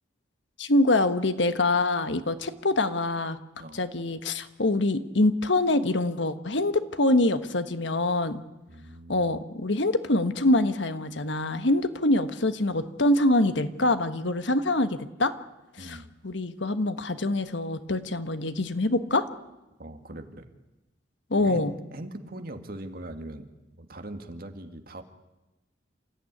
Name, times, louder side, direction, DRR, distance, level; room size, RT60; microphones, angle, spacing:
voice 1, 0.6-3.4 3.7-8.4 9.1-15.3 15.9-16.0 16.2-19.3 21.3-21.7, left 2 dB, 75° left, 11 dB, 1.4 m, -25 dB
voice 2, 8.7-9.4 15.8-16.1 19.8-20.5 21.4-25.0, right 1 dB, 50° right, 6 dB, 2.0 m, -41 dB
28.5 x 14.5 x 9.9 m, 1.0 s
head